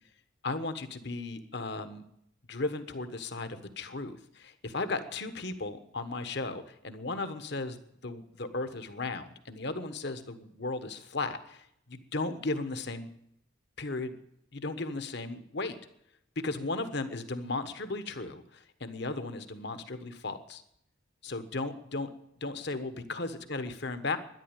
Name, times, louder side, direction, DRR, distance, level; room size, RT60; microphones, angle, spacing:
voice 1, 0.4-2.0 2.5-7.8 8.0-13.1 13.8-14.1 14.5-15.8 16.4-20.6 21.2-22.1 22.4-24.2, left 3 dB, 55° left, 10 dB, 1.3 m, -36 dB
12.5 x 11.0 x 9.0 m, 0.76 s
head